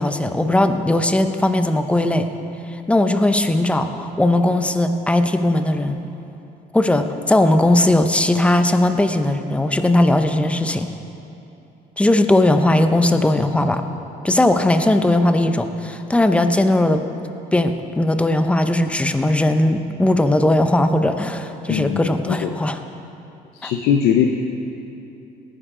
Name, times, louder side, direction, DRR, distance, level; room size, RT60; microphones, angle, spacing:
voice 1, 0.0-2.3 2.7-6.0 6.7-10.9 12.0-13.8 14.2-17.0 17.5-22.8 23.6-23.7, left 1 dB, 5° left, 8 dB, 0.7 m, -18 dB
voice 2, 21.7-22.5 23.5-24.3, left 9 dB, 90° left, 4 dB, 0.7 m, -20 dB
18.0 x 9.6 x 3.8 m, 2.8 s
cardioid pair, 110°, 17 cm